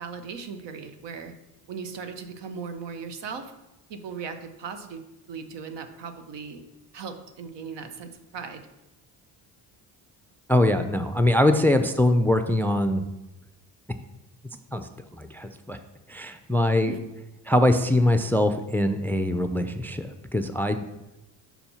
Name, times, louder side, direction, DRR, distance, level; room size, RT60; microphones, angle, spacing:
voice 1, 0.0-1.3 1.7-3.5 3.9-5.0 5.3-6.6 6.9-8.6 16.9-17.0, right 5 dB, 70° right, 8 dB, 0.9 m, -37 dB
voice 2, 10.5-13.1 14.7-15.8 16.1-16.9 17.5-20.8, left 1 dB, 5° left, 9 dB, 0.4 m, -23 dB
5.8 x 4.3 x 5.5 m, 0.98 s
supercardioid pair, 65°, 44 cm